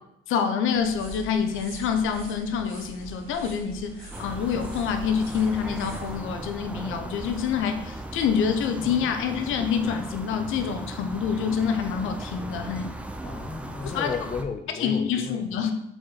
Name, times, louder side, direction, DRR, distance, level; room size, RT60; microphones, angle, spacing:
voice 1, 0.3-13.0 13.8-14.3 14.8-15.7, left 7 dB, 85° left, 7 dB, 0.7 m, -27 dB
sound 1, 0.7-6.2, right 2 dB, 45° right, 2.2 m, -43 dB
sound 2, 4.1-14.4, right 1 dB, 5° right, 0.6 m, -37 dB
voice 2, 13.2-15.7, left 6 dB, 35° left, 9 dB, 0.6 m, -34 dB
4.7 x 4.5 x 4.5 m, 0.82 s
cardioid pair, 90°, 20 cm